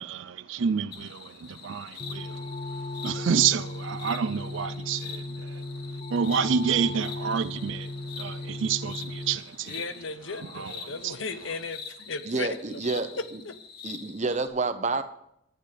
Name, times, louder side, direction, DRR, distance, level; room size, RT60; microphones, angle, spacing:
voice 1, 0.0-5.8 6.1-9.9 10.3-11.1 11.4-11.5, right 7 dB, 75° right, 0.4 m, -29 dB
sound 1, 0.9-14.5, left 6 dB, 50° left, 1.6 m, -44 dB
sound 2, 2.0-9.4, left 2 dB, 30° left, 0.4 m, -36 dB
voice 2, 9.7-12.8 13.2-13.5, left 4 dB, 80° left, 0.8 m, -36 dB
voice 3, 12.3-13.1 13.8-15.0, right 3 dB, 35° right, 0.8 m, -28 dB
11.5 x 9.4 x 5.0 m
head